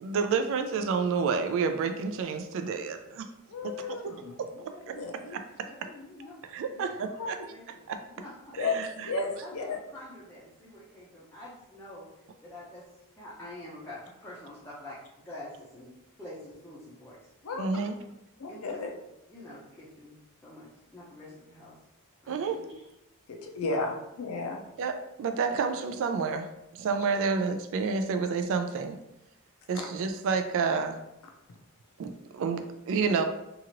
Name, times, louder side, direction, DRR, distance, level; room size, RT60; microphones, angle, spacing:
voice 1, 0.0-3.3 3.6-4.1 4.4-4.9 5.3-5.7 6.5-7.4 7.9-8.0 8.6-9.1 17.5-18.0 22.3-22.6 24.8-26.5 26.8-29.0 29.7-31.0 32.0-33.2, right 5 dB, 60° right, 7 dB, 0.3 m, -30 dB
voice 2, 3.5-4.3 4.9-5.4 7.2-7.3 8.6-8.8 9.0-9.8 17.4-17.6 18.4-18.9 23.3-24.6 29.7-29.9, left 3 dB, 70° left, 2 dB, 0.5 m, -33 dB
voice 3, 4.5-6.4 6.7-8.3 9.4-12.1 12.4-12.9 13.2-15.9 16.2-17.2 18.5-18.8 19.3-20.1 20.4-21.7 22.2-22.7, left 1 dB, 10° left, -9 dB, 0.6 m, -47 dB
2.8 x 2.4 x 2.9 m, 0.89 s
head